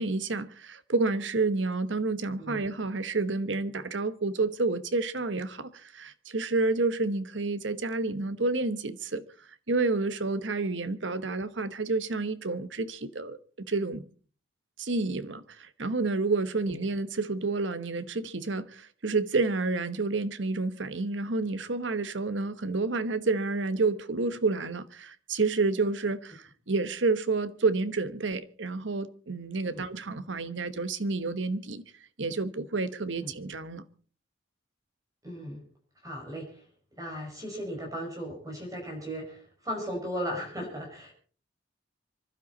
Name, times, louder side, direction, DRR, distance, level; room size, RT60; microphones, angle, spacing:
voice 1, 0.0-9.2 9.7-14.1 14.8-31.8 32.2-33.8, right 3 dB, 80° right, 1.2 m, -29 dB
voice 2, 35.2-35.6 36.0-36.6 37.0-41.1, equal, 20° right, 5.9 m, -36 dB
26.0 x 12.0 x 4.1 m
head